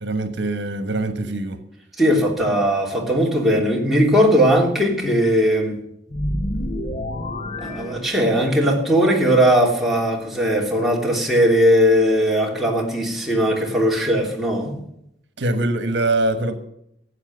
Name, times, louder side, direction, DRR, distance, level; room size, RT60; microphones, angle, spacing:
voice 1, 0.0-1.6 15.4-16.5, right 2 dB, 70° right, 1.3 m, -23 dB
voice 2, 2.0-5.8 7.6-14.7, equal, ahead, 3.1 m, -18 dB
sound 1, 6.1-8.6, left 1 dB, 40° left, 1.0 m, -28 dB
15.5 x 8.3 x 7.9 m
head